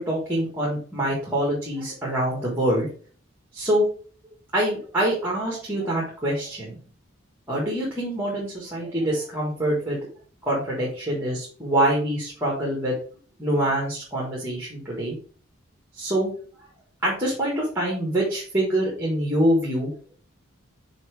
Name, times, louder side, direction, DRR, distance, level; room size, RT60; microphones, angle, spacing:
voice 1, 0.0-2.9 3.5-3.8 4.5-6.8 7.5-10.0 10.4-13.0 13.4-15.2 16.0-16.3 17.0-19.9, right 1 dB, 10° right, -4 dB, 1.7 m, -25 dB
6.0 x 4.0 x 4.8 m, 0.43 s
head